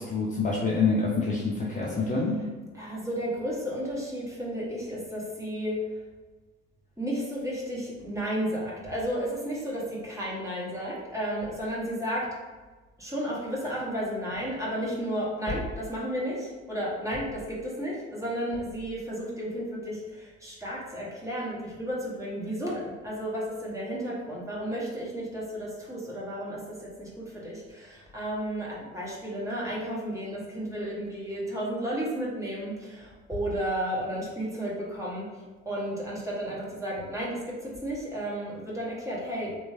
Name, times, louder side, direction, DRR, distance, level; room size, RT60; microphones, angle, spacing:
voice 1, 0.0-2.3, left 4 dB, 20° left, -5 dB, 0.6 m, -26 dB
voice 2, 2.7-5.8 7.0-12.3 13.0-39.6, equal, 10° right, -6 dB, 1.2 m, -33 dB
3.1 x 3.0 x 2.7 m, 1.3 s
figure-of-eight pair, 55°, 36 cm